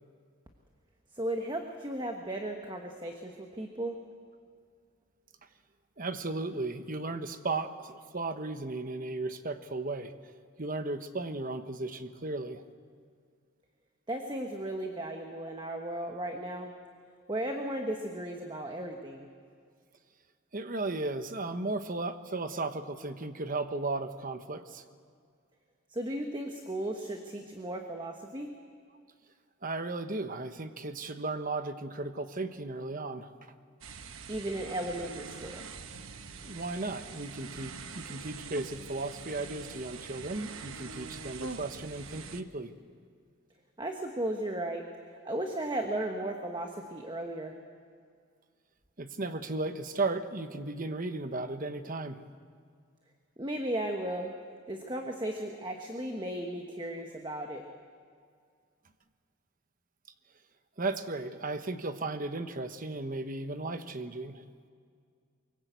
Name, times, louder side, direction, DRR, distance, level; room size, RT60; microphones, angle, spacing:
voice 1, 1.1-3.9 14.1-16.7 17.3-19.3 25.9-28.5 34.3-35.6 43.8-44.9 45.2-47.5 53.4-54.3 54.7-57.6, right 1 dB, 20° right, 3 dB, 1.3 m, -35 dB
voice 2, 6.0-10.1 10.6-12.6 20.5-24.8 29.6-33.3 36.4-42.7 49.0-52.2 60.8-64.4, right 2 dB, 35° right, 9 dB, 1.1 m, -35 dB
sound 1, 33.8-42.4, right 4 dB, 65° right, 1.1 m, -44 dB
24.0 x 22.0 x 8.2 m, 2.1 s
head